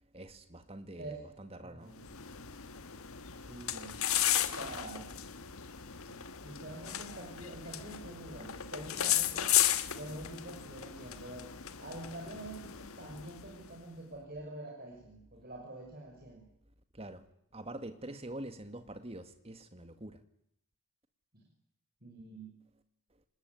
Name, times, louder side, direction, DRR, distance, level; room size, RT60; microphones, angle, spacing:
voice 1, 0.1-1.9 16.9-17.2 17.5-20.2, right 1 dB, 25° right, 2.0 m, -45 dB
voice 2, 0.9-1.3 1.6-2.0 3.4-4.0 4.5-5.1 6.0-9.6 9.9-11.5 11.8-16.5 22.0-22.6, right 2 dB, 40° right, 6.1 m, -46 dB
sound 1, 1.9-13.7, left 11 dB, 75° left, 1.5 m, -35 dB
27.5 x 19.5 x 9.6 m
head